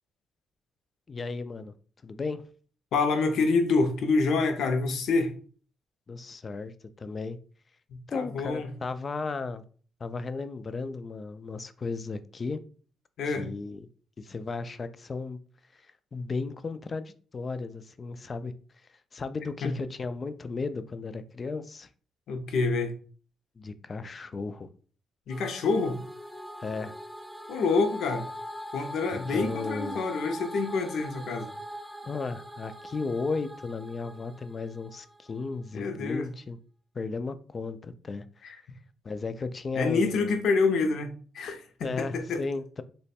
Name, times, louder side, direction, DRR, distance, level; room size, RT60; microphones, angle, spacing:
voice 1, 1.1-1.7 2.0-2.4 6.1-7.4 8.1-9.6 10.0-12.6 13.2-13.8 14.2-15.4 15.7-15.8 16.1-18.5 19.1-21.9 23.6-24.7 26.6-27.0 29.1-30.0 32.0-36.6 36.9-38.5 39.0-40.4 41.8-42.8, left 4 dB, 35° left, 0.3 m, -35 dB
voice 2, 2.9-5.3 8.1-8.7 13.2-13.5 19.6-19.7 22.3-22.9 25.3-26.0 27.5-28.3 28.7-31.5 35.7-36.3 38.4-38.6 39.7-41.1 41.3-42.4, left 4 dB, 75° left, 0.6 m, -27 dB
sound 1, 25.3-35.5, equal, 10° right, 0.8 m, -42 dB
3.0 x 2.1 x 4.2 m
cardioid pair, 90°, 0 cm